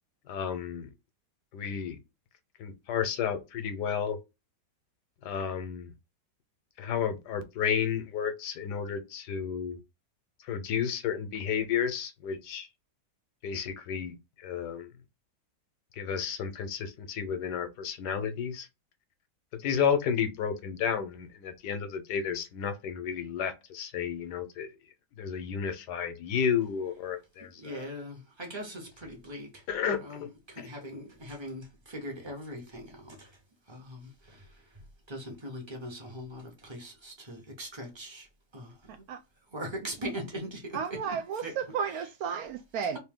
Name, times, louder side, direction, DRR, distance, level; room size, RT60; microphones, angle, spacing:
voice 1, 0.3-0.9 1.5-2.0 2.6-4.2 5.2-5.9 6.8-9.8 10.5-12.7 13.4-14.1 14.4-14.9 16.0-18.7 19.5-24.7 25.2-27.8 29.7-30.3, left 7 dB, 70° left, 1.3 m, -32 dB
voice 2, 27.6-29.6 29.9-33.4 33.7-34.8 35.1-38.3 38.5-39.0 39.5-41.0 41.4-41.5, equal, 20° right, 0.8 m, -41 dB
voice 3, 38.9-39.2 40.7-43.0, right 7 dB, 70° right, 0.9 m, -33 dB
3.3 x 2.7 x 3.6 m
omnidirectional pair, 1.9 m